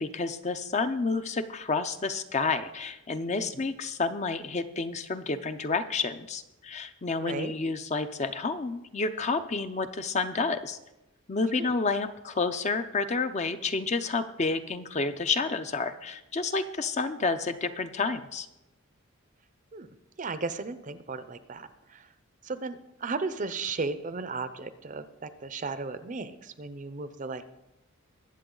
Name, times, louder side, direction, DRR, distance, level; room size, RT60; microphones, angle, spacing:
voice 1, 0.0-10.8 11.3-18.5, left 4 dB, 30° left, 9 dB, 0.6 m, -30 dB
voice 2, 7.2-7.5 11.5-11.7 19.7-22.1 22.4-27.5, right 3 dB, 35° right, 12 dB, 0.6 m, -35 dB
21.0 x 7.8 x 3.9 m, 0.92 s
head